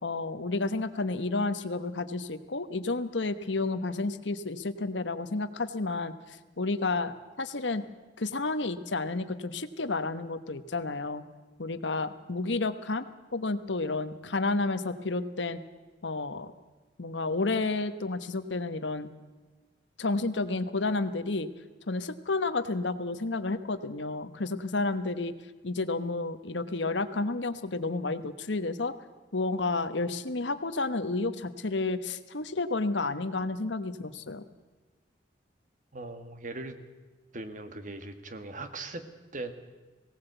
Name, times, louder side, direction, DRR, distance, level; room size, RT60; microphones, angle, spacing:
voice 1, 0.0-7.8 8.2-11.2 11.6-13.0 13.3-15.6 16.0-16.5 17.0-19.1 20.0-21.5 21.9-25.3 25.6-28.9 29.3-34.4, left 3 dB, 80° left, 11 dB, 1.2 m, -31 dB
voice 2, 35.9-36.8 37.3-39.5, right 2 dB, 45° right, 9 dB, 1.6 m, -40 dB
18.5 x 18.0 x 8.0 m, 1.3 s
head